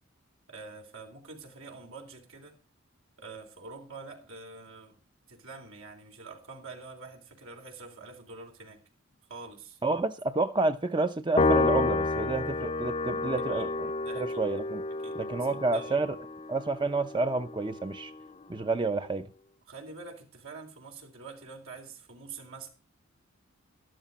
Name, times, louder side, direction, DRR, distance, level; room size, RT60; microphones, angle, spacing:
voice 1, 0.5-2.6 3.2-8.8 9.3-9.8 13.4-13.7 14.0-14.5 15.0-16.0 19.7-22.7, right 4 dB, 85° right, 3.8 m, -46 dB
voice 2, 9.8-13.9 14.2-14.8 15.2-16.2 16.5-18.1 18.5-19.3, right 3 dB, 20° right, 0.5 m, -29 dB
Piano, 11.4-17.9, left 3 dB, 30° left, 0.5 m, -30 dB
13.0 x 12.5 x 4.0 m
head